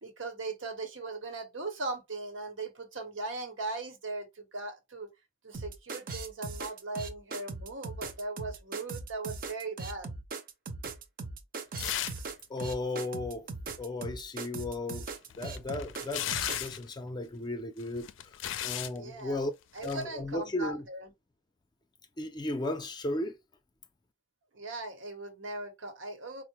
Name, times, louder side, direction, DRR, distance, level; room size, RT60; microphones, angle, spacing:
voice 1, 0.0-5.1 5.4-10.1 18.9-19.4 19.7-21.1 24.5-26.4, right 3 dB, 85° right, 1.0 m, -39 dB
sound 1, 5.5-16.7, right 3 dB, 50° right, 0.6 m, -39 dB
sound 2, 11.8-12.3 12.6-12.7 15.1-16.9 17.8-19.0 19.8-20.0, left 11 dB, 85° left, 0.4 m, -35 dB
voice 2, 12.5-13.5 13.8-15.1 15.4-18.1 18.6-19.5 19.8-20.8 22.2-23.4, left 2 dB, 20° left, 0.4 m, -35 dB
4.5 x 2.0 x 2.9 m
head